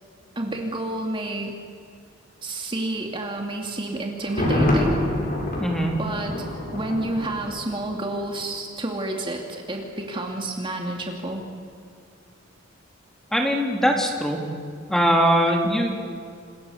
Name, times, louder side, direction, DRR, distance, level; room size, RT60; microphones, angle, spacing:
voice 1, 0.4-1.5 2.4-5.0 6.0-6.4 6.7-11.4 15.6-15.7, right 1 dB, 25° right, 1 dB, 2.6 m, -30 dB
Thunder, 4.2-8.1 8.4-8.5, left 1 dB, 45° left, 7.6 m, -26 dB
voice 2, 5.6-5.9 13.3-14.4 14.9-15.9, equal, 5° left, 1 dB, 3.5 m, -21 dB
29.5 x 27.5 x 7.2 m, 2.5 s
head